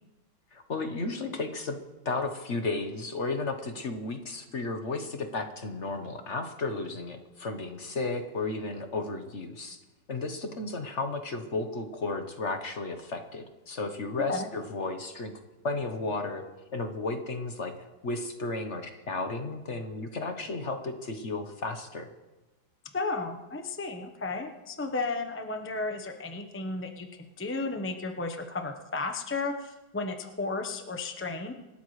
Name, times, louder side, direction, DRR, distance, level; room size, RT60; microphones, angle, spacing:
voice 1, 0.5-1.8 2.0-9.8 10.1-15.3 15.6-16.4 16.7-22.1, left 3 dB, 45° left, 6 dB, 1.2 m, -33 dB
voice 2, 22.9-27.1 27.4-31.5, left 3 dB, 10° left, 5 dB, 0.5 m, -33 dB
27.0 x 12.5 x 3.2 m, 1.1 s
omnidirectional pair, 2.1 m